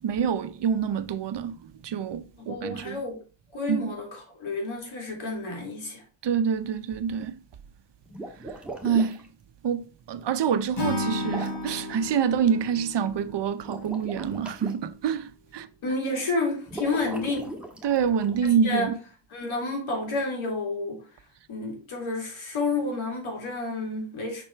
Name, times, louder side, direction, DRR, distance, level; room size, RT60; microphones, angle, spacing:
voice 1, 0.0-3.0 3.7-3.9 6.2-7.4 8.8-9.2 9.6-15.7 17.8-18.9, right 7 dB, 60° right, 0.7 m, -26 dB
voice 2, 2.4-3.2 3.5-6.0 15.8-17.6 18.6-18.9 19.3-21.1 21.5-24.4, left 2 dB, 75° left, 2.8 m, -30 dB
sound 1, 8.1-9.3 11.2-11.8 13.6-14.7 16.7-18.4, right 1 dB, ahead, 1.7 m, -38 dB
Acoustic guitar / Strum, 10.8-14.0, left 2 dB, 55° left, 2.4 m, -33 dB
6.0 x 4.3 x 4.4 m
cardioid pair, 95°, 49 cm